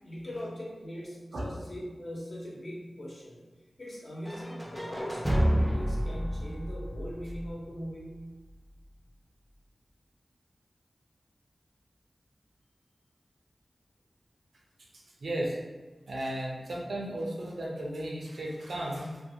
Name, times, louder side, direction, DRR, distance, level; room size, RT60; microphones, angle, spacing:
voice 1, 0.0-3.5 3.8-8.2, equal, 60° left, -5 dB, 0.9 m, -41 dB
sound 1, 4.2-8.2, equal, 10° right, 0.4 m, -30 dB
voice 2, 15.2-15.6 16.1-19.2, right 1 dB, 85° right, -2 dB, 0.6 m, -34 dB
2.6 x 2.3 x 2.7 m, 1.2 s
cardioid pair, 50°, 0 cm